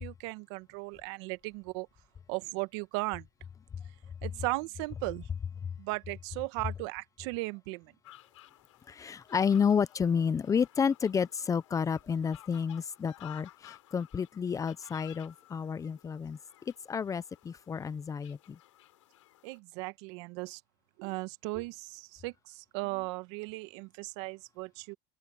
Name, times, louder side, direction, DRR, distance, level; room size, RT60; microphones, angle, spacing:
voice 1, 0.0-1.9 2.3-3.3 4.2-5.3 5.8-7.9 19.4-20.6 21.0-24.9, right 24 dB, 65° right, 1.5 m, -37 dB
sound 1, 8.0-19.6, left 15 dB, 90° left, 4.1 m, -56 dB
voice 2, 8.9-13.5 13.9-16.4 16.9-18.4, left 6 dB, 20° left, 0.8 m, -30 dB
open air
supercardioid pair, 115°, 15 cm